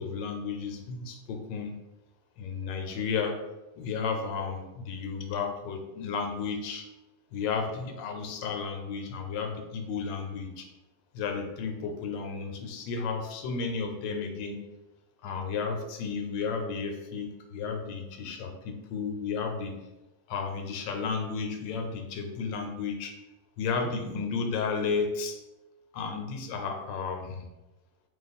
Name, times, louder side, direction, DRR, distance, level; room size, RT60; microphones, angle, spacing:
voice 1, 0.0-1.7 2.4-3.4 3.8-6.9 7.3-10.7 11.1-14.6 15.2-19.8 20.3-23.1 23.6-25.4 25.9-27.5, left 5 dB, 80° left, 3 dB, 1.3 m, -33 dB
3.0 x 2.2 x 4.1 m, 1.0 s
omnidirectional pair, 2.0 m